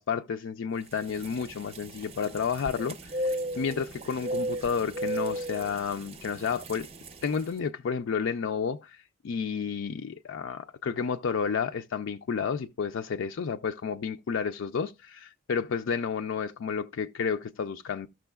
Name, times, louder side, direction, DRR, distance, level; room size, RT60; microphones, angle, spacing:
voice 1, 0.0-6.9 7.2-18.1, left 6 dB, 65° left, 0.4 m, -31 dB
sound 1, 0.9-7.5, right 1 dB, 30° right, 0.6 m, -36 dB
14.5 x 6.1 x 2.3 m
head